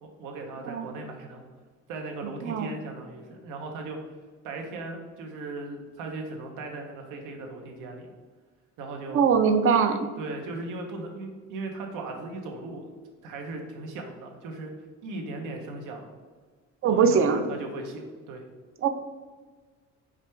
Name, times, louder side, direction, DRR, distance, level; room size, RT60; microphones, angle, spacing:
voice 1, 0.0-1.4 1.9-4.0 4.4-8.1 8.8-9.2 10.2-12.9 13.2-14.7 15.0-16.1 16.8-18.4, right 3 dB, 90° right, 3 dB, 0.9 m, -37 dB
voice 2, 2.4-2.7 9.1-10.1 16.8-17.5 18.8-18.9, right 6 dB, 45° right, 8 dB, 0.4 m, -22 dB
5.0 x 3.3 x 3.3 m, 1.4 s
cardioid pair, 135°, 30 cm